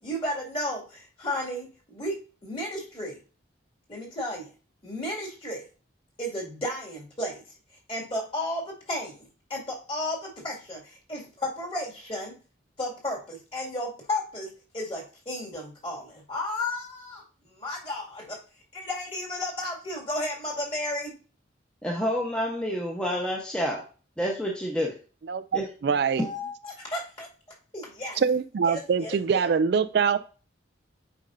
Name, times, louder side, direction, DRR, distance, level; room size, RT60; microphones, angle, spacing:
voice 1, 0.0-2.2 2.4-3.2 3.9-4.5 4.8-5.6 6.2-7.4 7.9-12.4 12.8-18.4 18.7-21.2 26.2-27.3 27.7-28.2 28.7-29.6, left 1 dB, 30° left, 2.2 m, -33 dB
voice 2, 21.8-23.8 24.2-24.9 25.5-25.7 26.2-26.3, equal, 5° left, 0.9 m, -28 dB
voice 3, 25.8-26.2 28.2-30.2, right 6 dB, 55° right, 0.3 m, -23 dB
8.3 x 5.2 x 2.6 m
head